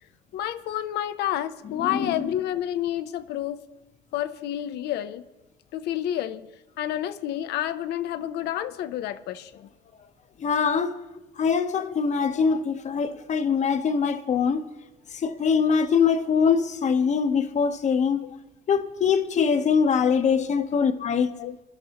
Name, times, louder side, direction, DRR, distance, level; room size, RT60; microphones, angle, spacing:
voice 1, 0.3-3.6 4.1-5.2 5.7-6.5 6.8-9.7 12.5-12.6 18.2-18.4 19.4-19.5 20.3-20.7 21.4-21.6, left 12 dB, 80° left, 0.6 m, -30 dB
voice 2, 10.4-10.9 11.4-14.6 15.2-18.2 18.7-21.3, left 6 dB, 45° left, 0.9 m, -23 dB
21.5 x 11.5 x 2.9 m
cardioid pair, 110°, 17 cm